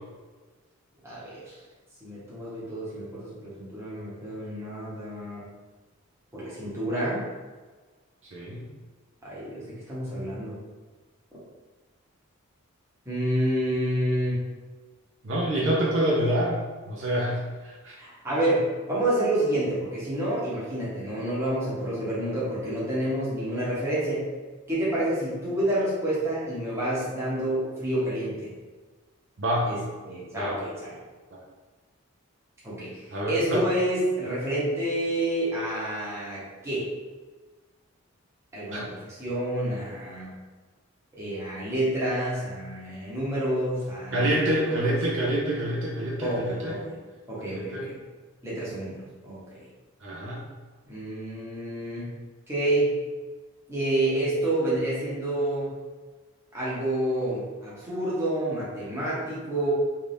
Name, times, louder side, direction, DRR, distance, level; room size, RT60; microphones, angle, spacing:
voice 1, 1.0-1.4 2.0-5.4 6.3-7.2 9.2-10.6 13.1-14.4 18.0-24.3 24.7-28.5 29.7-29.8 30.0-30.9 32.6-36.9 38.5-40.4 41.1-45.0 46.2-47.0 47.3-48.0 48.4-49.6 50.9-52.1 52.5-52.9 53.7-55.7 56.5-59.7, right 1 dB, 10° right, -9 dB, 1.0 m, -29 dB
voice 2, 8.3-8.6 15.2-16.6 16.9-18.0 29.4-29.7 30.4-30.5 33.1-33.7 38.7-38.8 44.1-46.7 47.5-47.9 50.0-50.4, right 1 dB, 55° right, -4 dB, 0.6 m, -27 dB
3.3 x 2.6 x 3.4 m, 1.3 s
head